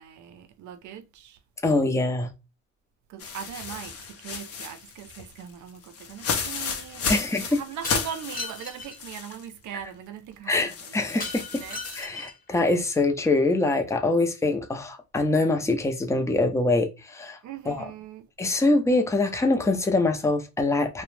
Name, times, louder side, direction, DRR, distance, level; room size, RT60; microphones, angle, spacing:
voice 1, 0.0-1.4 3.1-11.0 11.5-11.8 17.4-18.3, right 9 dB, 75° right, 0.6 m, -40 dB
voice 2, 1.6-2.3 7.1-7.6 10.5-11.6 11.9-17.4 17.7-17.9 18.4-21.0, left 2 dB, 10° left, 0.5 m, -24 dB
sound 1, 3.2-9.4 9.8-9.9 10.7-12.1, left 5 dB, 50° left, 0.6 m, -33 dB
Shatter, 7.8-9.0 11.2-12.5, left 3 dB, 30° left, 1.0 m, -37 dB
2.4 x 2.1 x 3.1 m
cardioid pair, 90°, 30 cm